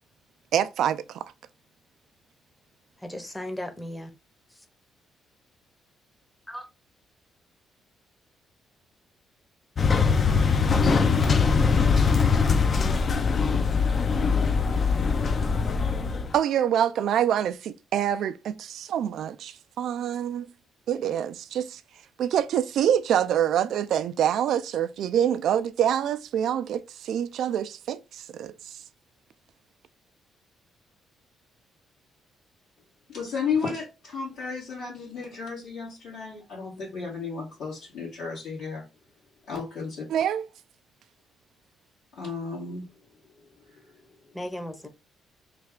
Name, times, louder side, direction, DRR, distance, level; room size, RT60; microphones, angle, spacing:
voice 1, 0.5-1.3 16.3-20.5 20.9-21.8 22.2-28.8 40.1-40.5, right 9 dB, 75° right, 0.3 m, -26 dB
voice 2, 3.0-4.1 6.5-6.7 44.3-44.9, left 1 dB, 10° left, 0.7 m, -36 dB
sound 1, 9.8-16.3, left 5 dB, 45° left, 0.4 m, -22 dB
voice 3, 33.1-38.8 39.5-40.0 42.2-42.8, left 5 dB, 80° left, 1.7 m, -33 dB
3.2 x 2.3 x 3.5 m
cardioid pair, 90°, 0 cm